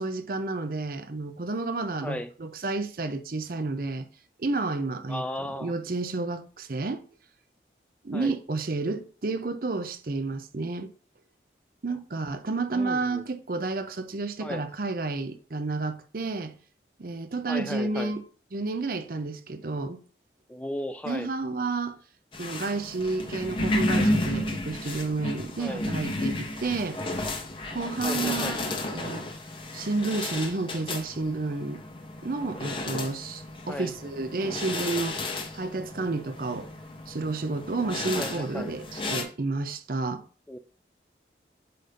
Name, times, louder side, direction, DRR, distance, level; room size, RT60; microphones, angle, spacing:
voice 1, 0.0-4.1 4.4-5.3 5.5-7.0 8.0-10.9 11.8-16.6 17.0-18.2 18.5-20.0 21.1-22.0 22.4-27.0 27.7-29.3 29.7-31.8 32.2-35.2 35.5-36.7 37.1-40.2, right 3 dB, 50° right, 0.6 m, -31 dB
voice 2, 5.1-5.7 8.1-8.4 12.7-13.2 14.4-14.6 17.5-18.1 20.5-21.3 25.6-25.9 28.0-28.6 33.7-33.9 38.1-38.8 40.5-40.6, left 1 dB, 5° left, 0.3 m, -35 dB
sound 1, 22.3-39.2, left 1 dB, 30° left, 0.8 m, -32 dB
7.8 x 2.7 x 5.1 m
head